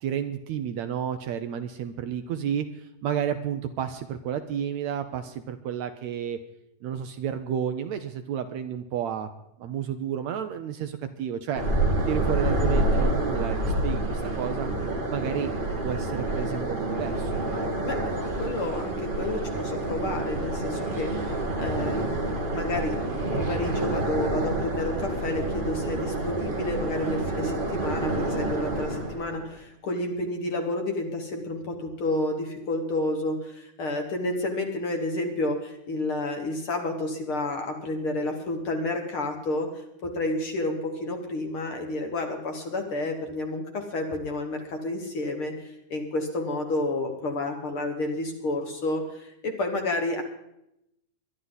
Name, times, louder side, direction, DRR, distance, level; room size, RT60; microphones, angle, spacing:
voice 1, 0.0-6.4 6.8-9.3 9.6-11.6 12.1-14.7 15.1-15.5 15.8-17.3, right 9 dB, 70° right, 8 dB, 1.8 m, -31 dB
sound 1, 11.5-29.5, right 2 dB, 30° right, 1.0 m, -28 dB
voice 2, 17.8-50.2, left 2 dB, 50° left, 3 dB, 2.1 m, -30 dB
22.5 x 11.5 x 4.0 m, 0.81 s
omnidirectional pair, 3.7 m